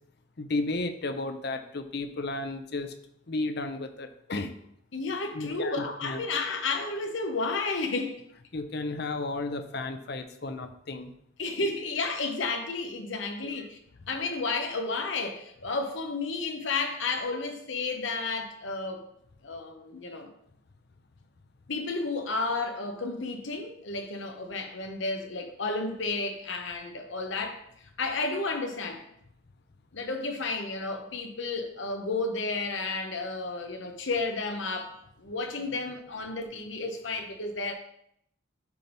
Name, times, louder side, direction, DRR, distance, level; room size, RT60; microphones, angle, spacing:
voice 1, 0.4-2.9 3.3-4.5 5.3-6.2 8.5-11.1 13.4-13.7, left 2 dB, 55° left, 0.7 m, -33 dB
voice 2, 4.9-8.2 11.4-13.8 14.1-19.1 19.4-20.3 21.7-27.6 28.0-29.0 29.9-37.7, left 3 dB, 70° left, 1.1 m, -32 dB
11.5 x 4.0 x 3.5 m
head